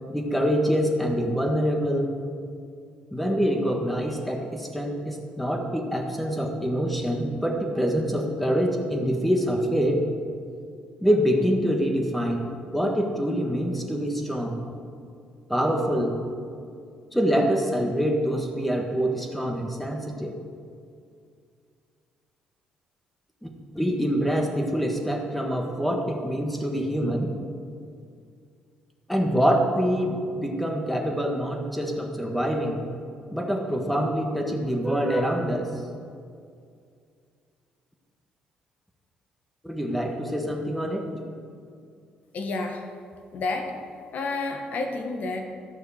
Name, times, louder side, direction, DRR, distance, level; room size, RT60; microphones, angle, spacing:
voice 1, 0.1-2.2 3.1-10.0 11.0-14.6 15.5-16.2 17.1-20.4 23.4-27.3 29.1-32.8 33.3-35.7 39.6-41.1, equal, 5° left, 2 dB, 1.6 m, -25 dB
voice 2, 42.3-42.9 43.3-43.8 44.1-45.4, left 3 dB, 60° left, 5 dB, 1.4 m, -30 dB
12.5 x 6.6 x 6.4 m, 2.3 s
cardioid pair, 100°, 3 cm